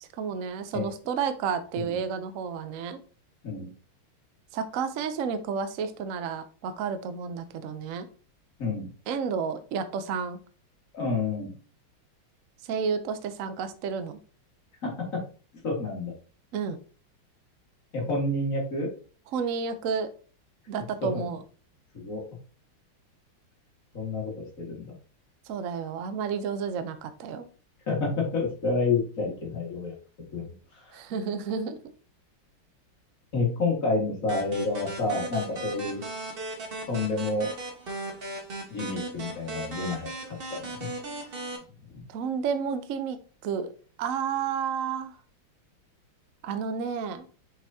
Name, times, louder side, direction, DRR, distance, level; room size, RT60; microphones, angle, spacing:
voice 1, 0.0-3.0 4.5-8.1 9.1-10.4 12.6-14.2 16.5-16.8 19.3-20.1 20.7-21.4 25.5-27.5 30.9-31.9 42.1-43.2 43.4-43.7 44.0-45.1 46.4-47.3, right 6 dB, 85° right, 10 dB, 0.7 m, -31 dB
voice 2, 8.6-8.9 10.9-11.5 14.8-14.9 15.6-16.1 17.9-18.9 21.1-21.3 21.9-22.2 23.9-24.9 27.9-30.0 30.3-30.5 30.8-31.0 33.3-36.0 36.9-37.5 38.7-40.7 41.9-42.0, left 3 dB, 40° left, -2 dB, 2.2 m, -29 dB
sound 1, 34.3-41.6, right 2 dB, 35° right, 1.1 m, -37 dB
6.2 x 5.5 x 2.8 m, 0.39 s
omnidirectional pair, 2.3 m